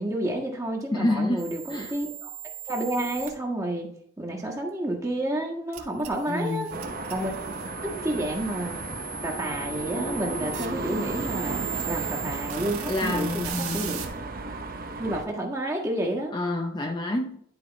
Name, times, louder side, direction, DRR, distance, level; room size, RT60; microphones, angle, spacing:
voice 1, 0.0-2.3 2.7-3.9 4.2-6.7 7.1-7.3 7.8-8.8 9.2-14.0 15.0-16.3, right 1 dB, 15° right, 1.5 m, -30 dB
voice 2, 0.9-1.4 1.7-1.9 6.3-6.8 12.8-14.0 16.3-17.4, left 2 dB, 20° left, 0.5 m, -28 dB
sound 1, 1.4-3.3 5.7-14.1, right 7 dB, 90° right, 1.8 m, -38 dB
sound 2, 6.7-15.2, right 3 dB, 40° right, 0.7 m, -34 dB
11.0 x 4.8 x 4.0 m
head